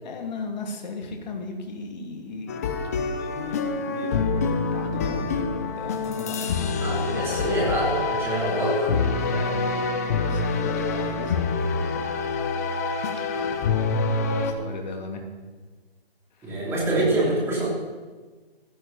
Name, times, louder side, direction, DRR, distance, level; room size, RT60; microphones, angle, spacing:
voice 1, 0.0-2.5 2.9-7.6 9.2-12.0 13.1-15.3 16.4-16.6 17.0-17.2, left 3 dB, 45° left, 2 dB, 2.8 m, -37 dB
sound 1, 2.5-14.5, left 4 dB, 15° left, 0.6 m, -26 dB
voice 2, 6.8-9.0 16.4-17.7, right 1 dB, 10° right, -4 dB, 3.3 m, -25 dB
15.0 x 15.0 x 4.2 m, 1.4 s
hypercardioid pair, 155°, 31 cm